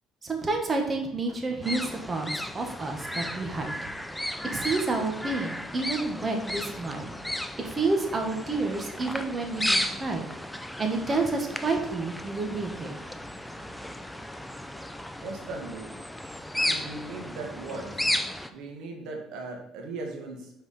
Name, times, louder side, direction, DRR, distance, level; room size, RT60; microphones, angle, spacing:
voice 1, 0.2-3.9 4.5-7.1 7.6-10.3 10.8-12.9, right 3 dB, 25° right, 3 dB, 1.3 m, -29 dB
sound 1, 1.6-18.5, left 1 dB, 5° left, 0.5 m, -34 dB
voice 2, 15.2-15.9 16.5-18.1 18.5-20.5, right 3 dB, 75° right, 2 dB, 1.6 m, -38 dB
5.8 x 4.7 x 4.1 m, 0.88 s
cardioid pair, 120°, 0 cm